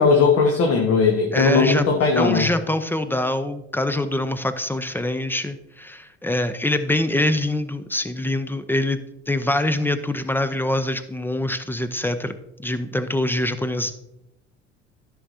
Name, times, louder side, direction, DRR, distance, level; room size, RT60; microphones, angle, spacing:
voice 1, 0.0-2.5, left 4 dB, 40° left, 1 dB, 1.6 m, -18 dB
voice 2, 1.3-1.9 2.2-9.0 9.3-12.3 12.6-13.9, left 1 dB, 5° left, 11 dB, 0.6 m, -24 dB
14.0 x 6.3 x 2.8 m, 0.85 s
figure-of-eight pair, 65°, 37 cm